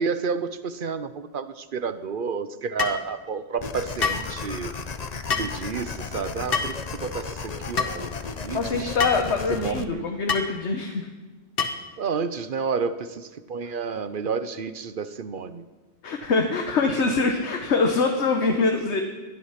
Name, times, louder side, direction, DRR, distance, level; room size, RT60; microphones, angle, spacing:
voice 1, 0.0-4.7 5.4-8.1 8.4-9.0 9.5-10.1 12.0-15.6, right 5 dB, 50° right, 12 dB, 0.8 m, -30 dB
sound 1, 2.8-3.0 4.0-4.3 5.3-5.5 6.5-6.8 7.8-7.9 9.0-9.2 10.3-10.5 11.6-11.9, left 5 dB, 55° left, 1.4 m, -26 dB
sound 2, 3.6-9.9, left 5 dB, 40° left, 0.9 m, -34 dB
voice 2, 8.5-11.1 16.0-19.0, left 4 dB, 70° left, 4 dB, 1.4 m, -24 dB
21.0 x 12.0 x 5.8 m, 1.3 s
omnidirectional pair, 1.2 m